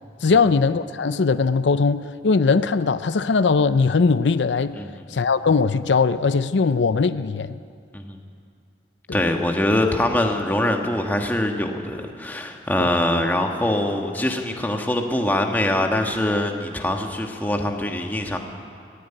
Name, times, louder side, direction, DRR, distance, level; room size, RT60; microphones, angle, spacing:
voice 1, 0.2-4.8 5.1-7.6 9.1-9.2 12.8-12.9, left 4 dB, 85° left, 13 dB, 0.5 m, -20 dB
voice 2, 4.8-5.1 7.9-8.2 9.1-18.4, left 1 dB, 10° left, 3 dB, 1.4 m, -23 dB
17.0 x 16.0 x 10.0 m, 2.3 s
head